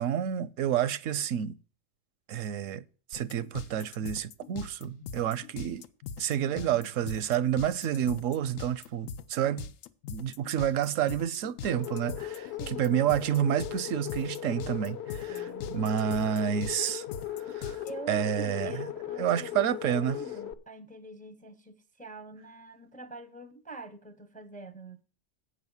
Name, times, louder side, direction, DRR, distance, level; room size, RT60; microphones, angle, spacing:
voice 1, 0.0-1.6 2.3-2.8 3.1-5.8 6.2-9.7 10.1-17.0 17.5-18.9 19.2-20.2, right 10 dB, 80° right, 1.0 m, -29 dB
sound 1, 3.1-17.9, left 6 dB, 90° left, 1.1 m, -41 dB
voice 2, 6.3-6.9 12.6-13.1 15.3-15.9 17.8-25.0, right 2 dB, 10° left, 0.6 m, -45 dB
sound 2, 11.7-20.5, left 11 dB, 60° left, 1.0 m, -38 dB
8.6 x 6.5 x 7.1 m
omnidirectional pair, 1.3 m